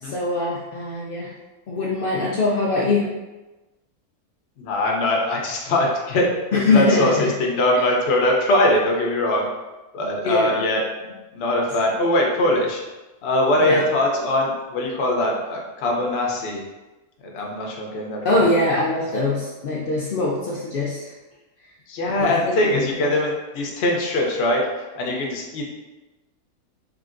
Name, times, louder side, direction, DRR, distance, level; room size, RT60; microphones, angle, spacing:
voice 1, 0.0-1.3 1.7-3.1 6.5-7.0 7.7-7.8 10.2-10.5 13.6-13.8 18.2-21.1 22.2-23.1, left 2 dB, 75° left, -4 dB, 0.5 m, -22 dB
voice 2, 4.6-9.5 9.9-12.8 13.2-16.6 17.3-18.4 21.9-24.6 25.0-25.7, left 1 dB, 55° left, -1 dB, 0.8 m, -22 dB
3.9 x 3.3 x 2.5 m, 1.1 s
omnidirectional pair, 1.6 m